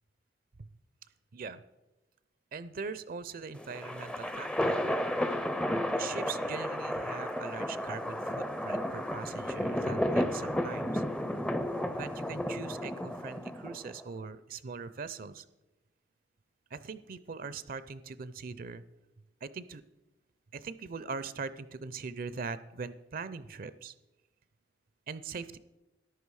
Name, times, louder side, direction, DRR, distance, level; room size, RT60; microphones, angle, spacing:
voice 1, 2.5-4.9 6.0-11.0 11.9-15.5 16.7-18.8 19.4-19.8 20.5-23.9 25.1-25.6, right 5 dB, 50° right, 15 dB, 0.5 m, -41 dB
sound 1, 3.5-14.0, left 1 dB, 5° left, 0.5 m, -33 dB
14.0 x 10.5 x 4.7 m, 1.0 s
head